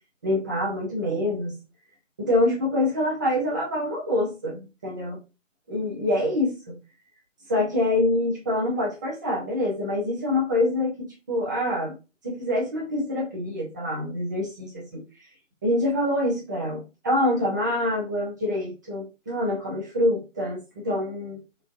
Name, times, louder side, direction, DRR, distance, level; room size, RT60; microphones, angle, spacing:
voice 1, 0.2-1.5 2.2-5.2 5.7-6.7 7.5-11.9 12.2-15.0 15.6-21.4, left 1 dB, 15° right, -3 dB, 0.8 m, -26 dB
5.1 x 3.5 x 2.6 m, 0.28 s
figure-of-eight pair, 155°, 39 cm